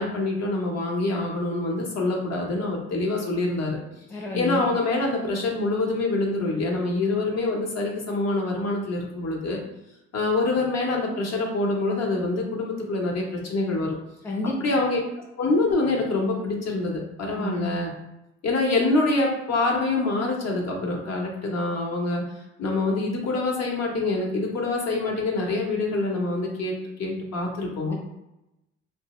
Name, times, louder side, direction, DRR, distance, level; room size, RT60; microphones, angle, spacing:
voice 1, 0.0-3.8 4.3-9.6 10.1-14.0 14.6-15.0 15.4-17.9 18.4-22.2 22.6-27.9, left 2 dB, 60° left, -1 dB, 0.8 m, -25 dB
voice 2, 4.1-4.7 14.2-14.6 17.4-17.7, left 3 dB, 5° left, -1 dB, 0.6 m, -30 dB
2.8 x 2.0 x 3.0 m, 0.92 s
cardioid pair, 90°, 30 cm